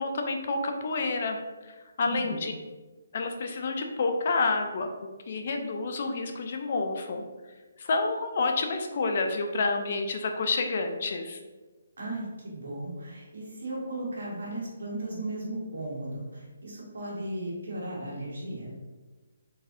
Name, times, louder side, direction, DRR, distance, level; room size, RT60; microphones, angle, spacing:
voice 1, 0.0-1.4 2.0-2.5 3.1-7.2 7.8-11.4, left 3 dB, 40° left, 4 dB, 0.3 m, -29 dB
voice 2, 2.0-2.5 12.0-18.7, right 1 dB, 70° right, -5 dB, 1.4 m, -36 dB
3.8 x 2.6 x 2.5 m, 1.3 s
hypercardioid pair, 170°, 0 cm